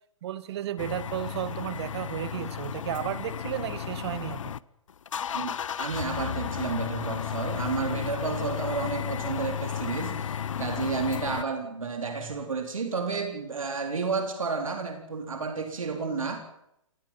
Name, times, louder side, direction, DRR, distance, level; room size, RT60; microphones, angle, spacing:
voice 1, 0.2-4.5 7.9-8.0, right 12 dB, 55° right, 1.5 m, -33 dB
sound 1, 0.8-4.6 4.9-11.4, left 8 dB, 75° left, 0.8 m, -33 dB
voice 2, 5.3-16.4, right 4 dB, 85° right, 4.0 m, -31 dB
27.5 x 18.5 x 5.7 m
hypercardioid pair, 125°, 17 cm